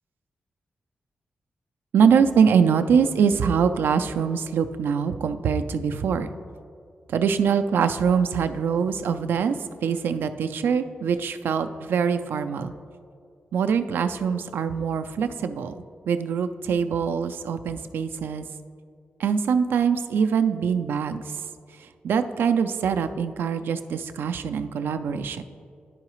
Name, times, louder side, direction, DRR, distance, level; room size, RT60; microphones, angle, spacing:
voice 1, 1.9-6.3 7.1-9.6 9.8-12.7 13.5-18.4 19.2-21.2 21.8-25.4, right 6 dB, 85° right, 9 dB, 0.3 m, -23 dB
10.5 x 4.8 x 3.0 m, 2.3 s
cardioid pair, 95°, 4 cm